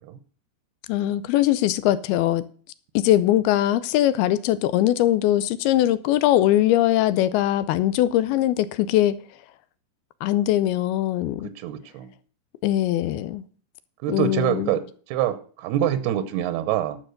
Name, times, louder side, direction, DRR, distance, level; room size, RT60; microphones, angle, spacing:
voice 1, 0.9-2.4 3.0-9.2 10.2-11.5 12.6-13.4 14.1-14.8, left 13 dB, 80° left, 2.6 m, -21 dB
voice 2, 11.4-12.1 14.0-14.8 15.1-17.0, right 11 dB, 85° right, 2.8 m, -25 dB
11.5 x 6.1 x 6.5 m
omnidirectional pair, 4.5 m